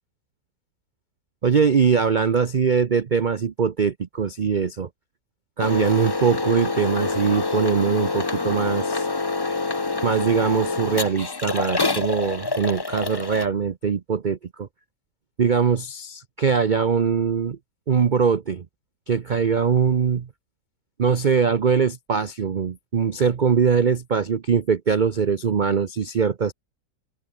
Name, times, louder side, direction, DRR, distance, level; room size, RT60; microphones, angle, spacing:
voice 1, 1.4-4.9 5.6-9.1 10.0-14.7 15.4-17.6 17.9-18.7 19.1-20.3 21.0-26.5, right 6 dB, 60° right, 0.5 m, -22 dB
Adriana Lopez - Coffee Machine, 5.6-13.5, left 3 dB, 25° left, 0.5 m, -26 dB
open air
omnidirectional pair, 1.9 m